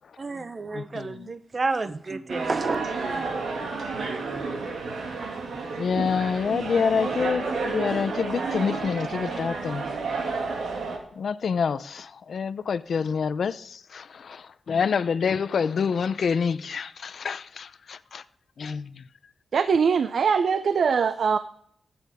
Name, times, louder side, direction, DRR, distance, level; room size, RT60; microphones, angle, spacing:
voice 1, 0.2-3.5, right 3 dB, 35° right, 0.8 m, -31 dB
voice 2, 0.7-1.3 5.8-9.9 11.2-18.2 18.6-19.0, left 6 dB, 65° left, 0.5 m, -27 dB
sound 1, 2.3-11.0, right 4 dB, 90° right, 2.3 m, -31 dB
voice 3, 19.5-21.4, right 6 dB, 70° right, 0.5 m, -22 dB
13.5 x 8.7 x 3.6 m
wide cardioid pair, 100°, 0 cm